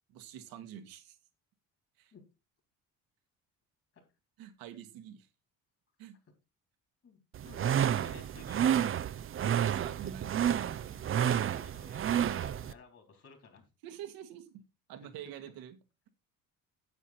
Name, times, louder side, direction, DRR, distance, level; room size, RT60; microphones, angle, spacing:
voice 1, 0.1-1.2 2.0-2.1 4.4-5.3 6.0-6.1 9.4-11.0 13.8-14.6 14.9-15.8, right 10 dB, 85° right, 9 dB, 1.7 m, -46 dB
voice 2, 7.0-8.8 10.0-13.6 15.0-15.1, left 4 dB, 45° left, 5 dB, 4.0 m, -56 dB
sound 1, 7.3-12.7, right 9 dB, 40° right, 0.6 m, -30 dB
9.6 x 7.4 x 4.3 m, 0.27 s
cardioid pair, 95°, 34 cm